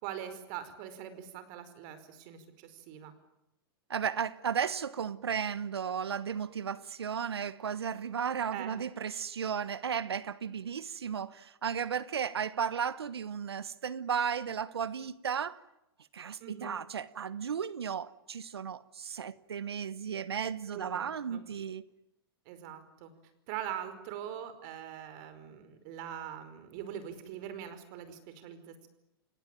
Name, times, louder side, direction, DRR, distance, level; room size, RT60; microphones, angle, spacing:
voice 1, 0.0-3.1 8.5-8.8 16.4-16.7 20.7-21.4 22.4-23.1 23.5-28.9, right 10 dB, 50° right, 5.0 m, -42 dB
voice 2, 3.9-15.6 16.1-21.8, right 7 dB, 90° right, 1.1 m, -34 dB
29.5 x 18.0 x 9.2 m
hypercardioid pair, 115°, 13 cm